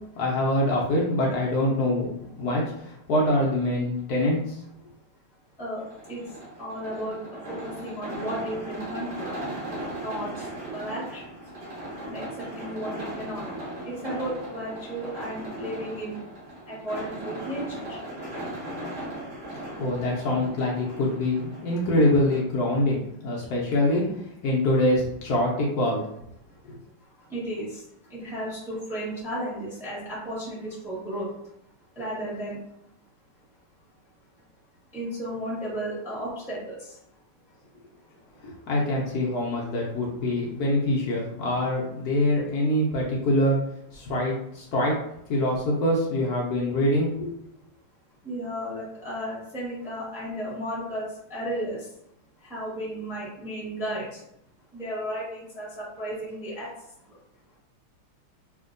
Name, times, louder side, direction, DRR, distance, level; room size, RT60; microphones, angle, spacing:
voice 1, 0.1-2.1 2.4-4.6 19.8-26.0 26.6-26.8 38.4-43.6 43.9-45.0 45.3-47.3, left 1 dB, 85° left, -4 dB, 0.8 m, -24 dB
voice 2, 5.3-9.4 9.7-13.5 13.8-16.2 16.6-18.0 23.4-23.5 26.5-26.7 27.0-31.5 31.8-32.7 34.4-34.5 34.9-37.2 38.0-38.2 48.2-51.9 52.4-54.2 54.7-57.2 57.5-57.6, equal, ahead, -7 dB, 0.6 m, -35 dB
sound 1, 5.8-22.4, right 1 dB, 40° right, 1.3 m, -38 dB
3.5 x 2.5 x 2.5 m, 0.77 s
omnidirectional pair, 2.4 m